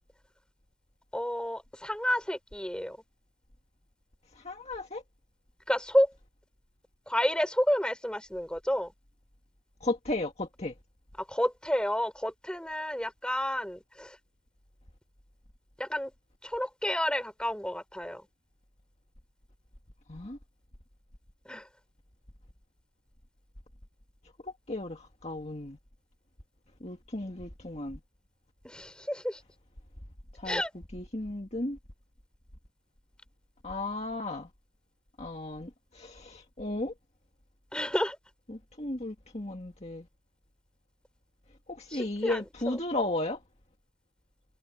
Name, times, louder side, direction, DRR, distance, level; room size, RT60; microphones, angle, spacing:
voice 1, 1.1-3.0 5.7-6.1 7.1-8.9 11.3-14.2 15.8-16.1 16.4-18.2 21.5-21.7 28.6-29.4 30.4-30.7 37.7-38.2 41.9-42.8, equal, 5° left, 3.9 m, -30 dB
voice 2, 4.4-5.0 9.8-10.7 20.1-20.4 24.4-25.8 26.8-28.0 30.3-30.6 30.9-31.8 33.6-34.5 35.2-36.9 38.5-40.1 41.7-43.4, left 2 dB, 30° left, 2.0 m, -35 dB
head